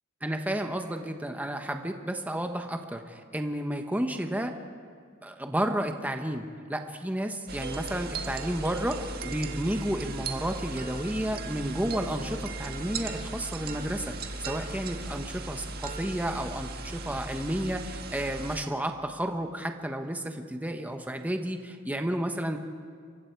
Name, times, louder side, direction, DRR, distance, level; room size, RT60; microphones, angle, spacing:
voice 1, 0.2-4.5 5.2-22.6, right 1 dB, 10° right, 5 dB, 1.1 m, -32 dB
sound 1, 7.5-18.6, right 3 dB, 50° right, 1.7 m, -37 dB
28.5 x 23.5 x 4.6 m, 2.1 s
head